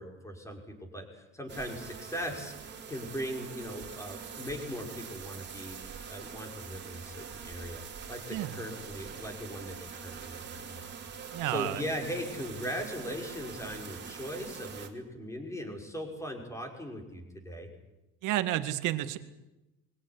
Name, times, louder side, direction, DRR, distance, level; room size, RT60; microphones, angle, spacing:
voice 1, 0.0-5.8 6.1-7.8 8.1-10.9 11.2-17.7, equal, 10° left, 2 dB, 6.0 m, -39 dB
sound 1, 1.5-14.9, right 6 dB, 35° right, 3.9 m, -44 dB
voice 2, 11.3-11.8 18.2-19.2, right 14 dB, 65° right, 10 dB, 2.1 m, -31 dB
24.0 x 17.5 x 9.9 m, 0.98 s
cardioid pair, 115°, 33 cm